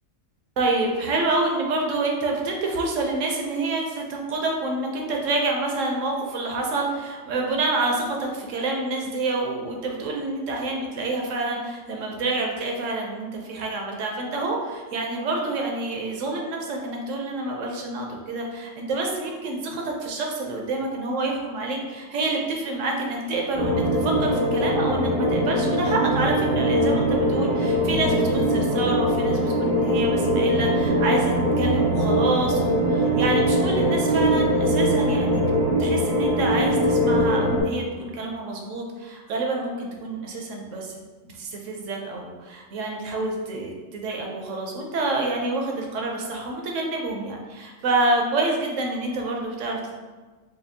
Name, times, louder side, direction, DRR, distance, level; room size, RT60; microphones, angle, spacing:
voice 1, 0.6-35.4 35.8-49.9, right 2 dB, 65° right, 0 dB, 0.9 m, -27 dB
sound 1, 23.6-37.6, equal, 85° right, 1.5 m, -22 dB
4.2 x 2.6 x 2.6 m, 1.3 s
omnidirectional pair, 1.6 m